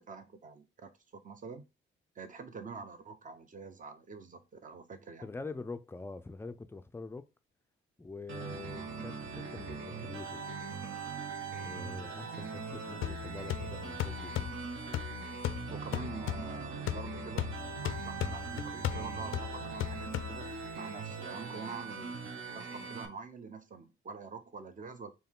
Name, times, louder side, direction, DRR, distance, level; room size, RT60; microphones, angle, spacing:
voice 1, 0.0-1.6 2.1-5.3 15.7-17.5 17.8-20.5 20.7-22.2 22.5-25.1, right 5 dB, 40° right, 0.9 m, -46 dB
voice 2, 5.2-7.3 8.0-10.4 11.6-14.5, left 3 dB, 10° left, 0.4 m, -44 dB
sound 1, 8.3-23.1, right 5 dB, 65° right, 1.1 m, -41 dB
sound 2, 13.0-20.7, left 12 dB, 75° left, 0.4 m, -38 dB
4.6 x 3.2 x 3.6 m
cardioid pair, 110°, 21 cm